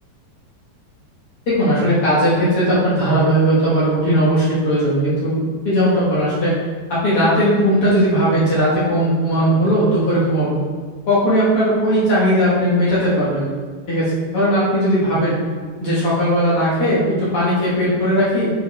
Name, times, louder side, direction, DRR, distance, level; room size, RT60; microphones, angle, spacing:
voice 1, 1.5-5.4 5.6-6.6 6.9-10.6 11.1-13.5 13.9-15.4 15.8-18.5, equal, 60° left, -9 dB, 1.5 m, -17 dB
7.7 x 4.8 x 3.5 m, 1.5 s
omnidirectional pair, 5.0 m